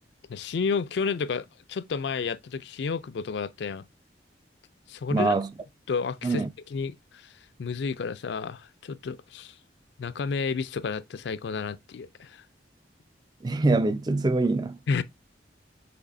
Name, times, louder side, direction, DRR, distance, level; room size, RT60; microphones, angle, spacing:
voice 1, 0.3-3.9 4.9-5.4 5.9-6.4 6.7-7.3 7.6-9.6 10.0-12.4 14.9-15.0, left 5 dB, 65° left, 0.4 m, -31 dB
voice 2, 5.1-5.5 6.2-6.5 13.4-14.8, right 2 dB, 20° right, 0.3 m, -24 dB
6.0 x 3.4 x 2.6 m
head